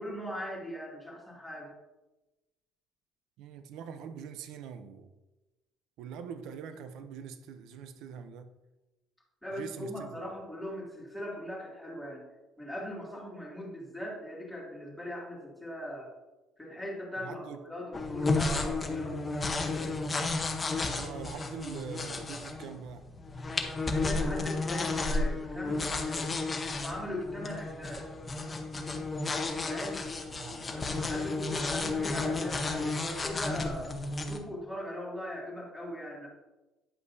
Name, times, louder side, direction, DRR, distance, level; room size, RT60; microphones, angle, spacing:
voice 1, 0.0-1.7 9.4-12.3 12.6-16.1 16.6-19.9 23.9-26.3 26.7-28.1 29.6-30.1 30.7-33.9 34.3-36.3, equal, ahead, 2.3 m, -40 dB
voice 2, 3.4-5.1 6.0-8.5 9.5-10.2 17.2-17.6 20.9-23.1 30.3-31.0, right 7 dB, 75° right, 0.6 m, -43 dB
sound 1, 17.9-34.4, left 3 dB, 20° left, 0.9 m, -32 dB
9.8 x 8.3 x 2.7 m
cardioid pair, 165°, 0 cm